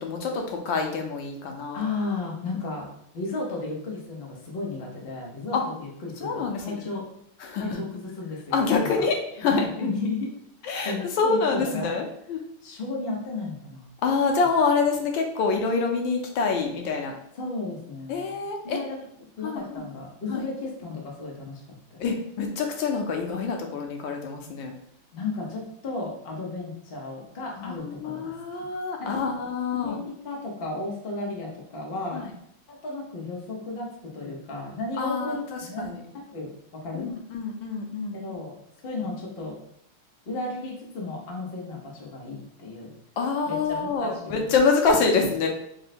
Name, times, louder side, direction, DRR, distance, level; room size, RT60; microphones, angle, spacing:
voice 1, 0.0-1.8 5.5-5.6 6.2-6.8 7.4-7.8 8.5-9.9 10.6-12.4 14.0-17.2 18.1-18.8 19.4-19.9 20.3-20.5 22.0-24.7 27.6-30.0 32.1-32.3 35.0-36.0 36.9-38.2 43.2-45.5, left 4 dB, 70° left, 3 dB, 1.2 m, -26 dB
voice 2, 1.7-2.9 3.1-7.1 7.5-9.1 9.5-10.3 10.8-11.9 12.6-13.9 17.3-18.3 18.6-19.0 19.4-22.0 25.1-28.3 29.0-29.2 29.7-32.3 32.7-37.1 38.1-38.6 38.8-39.6 40.3-42.9 43.5-44.5 45.4-45.5, left 3 dB, 90° left, -2 dB, 0.5 m, -34 dB
3.7 x 2.1 x 4.1 m, 0.75 s
omnidirectional pair, 2.4 m